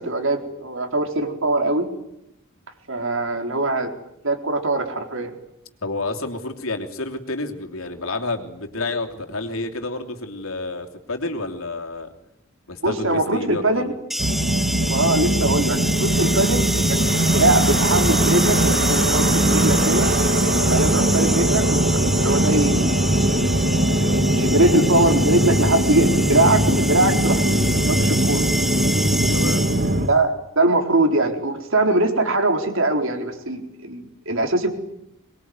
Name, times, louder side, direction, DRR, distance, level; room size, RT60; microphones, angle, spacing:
voice 1, 0.0-1.9 2.9-3.9 4.2-5.3 12.8-13.9 14.8-17.0 17.3-20.1 20.7-22.8 23.5-23.6 23.9-27.5 27.9-28.4 30.1-34.7, right 2 dB, 65° right, 5 dB, 4.1 m, -22 dB
voice 2, 5.8-12.1 12.7-13.8 20.5-20.7 29.3-29.6, left 2 dB, 85° left, 4 dB, 3.1 m, -29 dB
sound 1, 14.1-30.1, equal, ahead, 1.0 m, -27 dB
sound 2, 14.2-30.1, right 1 dB, 50° right, 2.3 m, -20 dB
24.0 x 21.5 x 9.6 m, 0.81 s
head